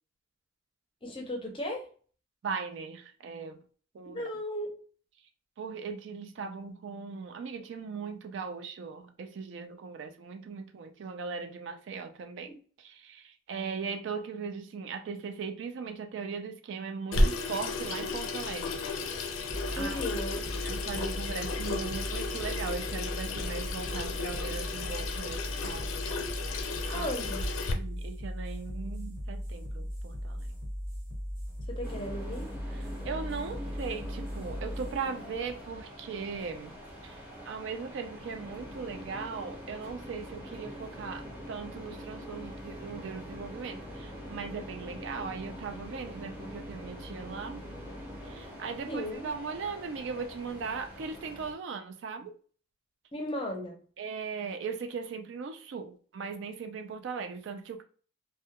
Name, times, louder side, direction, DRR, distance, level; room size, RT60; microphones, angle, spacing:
voice 1, 1.0-1.8 4.1-4.7 19.7-20.4 26.9-27.4 31.7-32.4 48.9-49.3 53.1-53.8, equal, 25° left, 0.5 m, -35 dB
voice 2, 2.4-3.6 3.9-4.2 5.6-12.5 12.8-18.8 19.7-20.1 20.6-25.9 26.3-26.5 26.9-27.1 27.7-30.5 32.7-36.7 37.0-47.6 48.2-52.3 54.0-57.8, right 5 dB, 60° right, 0.3 m, -39 dB
Water tap faucet / Sink (filling or washing), 17.1-27.7, left 3 dB, 85° left, 0.4 m, -33 dB
sound 1, 19.5-36.5, equal, 80° right, 1.2 m, -38 dB
sound 2, 31.8-51.5, equal, 5° right, 0.7 m, -44 dB
2.2 x 2.1 x 2.8 m
head